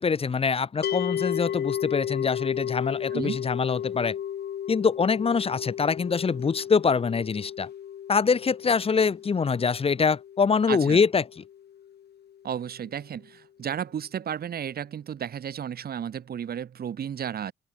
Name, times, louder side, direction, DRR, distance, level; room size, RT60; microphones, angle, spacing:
voice 1, 0.0-4.1 4.7-7.7 8.1-11.2, left 5 dB, 30° left, 0.8 m, -24 dB
sound 1, 0.8-12.0, left 9 dB, 55° left, 1.1 m, -34 dB
voice 2, 3.1-3.4 10.7-11.0 12.4-17.5, right 8 dB, 50° right, 1.3 m, -33 dB
open air
cardioid pair, 90°, 20 cm